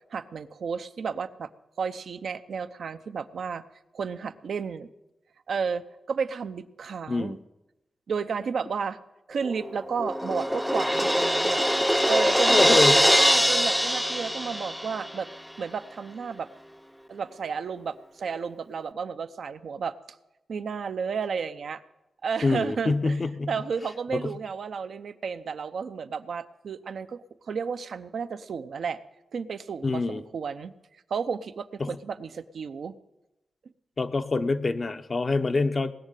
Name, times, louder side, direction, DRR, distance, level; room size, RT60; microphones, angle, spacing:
voice 1, 0.1-1.5 1.8-3.6 3.9-4.9 5.5-7.4 8.1-9.0 9.3-11.6 12.1-15.3 15.6-16.5 17.1-19.9 20.5-21.8 22.2-23.2 23.5-29.0 29.3-30.7 31.1-32.9, right 6 dB, 75° right, 10 dB, 0.7 m, -32 dB
Crash cymbal, 9.4-15.2, equal, ahead, 0.7 m, -23 dB
voice 2, 12.5-13.0 22.4-23.5 24.1-24.3 29.8-30.2 31.8-32.0 34.0-35.9, left 3 dB, 50° left, 9 dB, 0.9 m, -25 dB
19.5 x 6.6 x 9.1 m, 0.95 s
cardioid pair, 50°, 0 cm